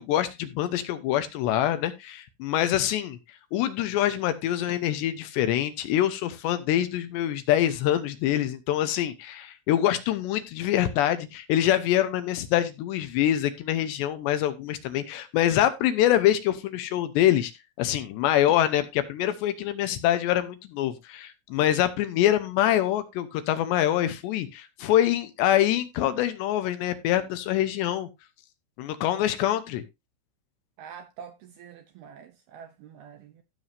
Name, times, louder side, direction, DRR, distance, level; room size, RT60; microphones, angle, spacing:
voice 1, 0.0-3.2 3.5-17.5 17.8-28.1 28.8-29.8, left 12 dB, 75° left, 3.0 m, -25 dB
voice 2, 30.8-33.4, right 7 dB, 75° right, 2.4 m, -46 dB
15.5 x 7.1 x 2.7 m
omnidirectional pair, 5.4 m